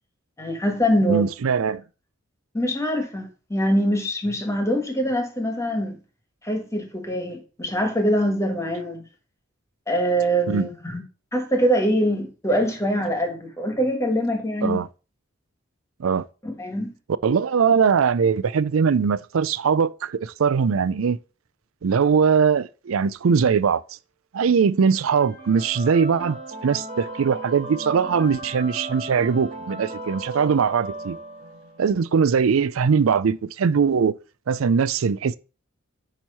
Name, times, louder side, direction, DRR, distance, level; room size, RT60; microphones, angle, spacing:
voice 1, 0.4-1.2 2.5-6.0 6.4-9.0 9.9-11.0 11.3-14.8 16.4-16.9, equal, 15° left, 1.5 m, -23 dB
voice 2, 1.1-1.8 10.5-10.7 14.6-14.9 16.0-16.3 17.2-21.2 21.8-23.8 24.3-26.4 26.6-31.2 31.8-34.2 34.5-35.4, right 6 dB, 80° right, 0.4 m, -21 dB
sound 1, 25.0-32.0, right 2 dB, 35° right, 2.8 m, -36 dB
9.0 x 3.1 x 5.5 m
head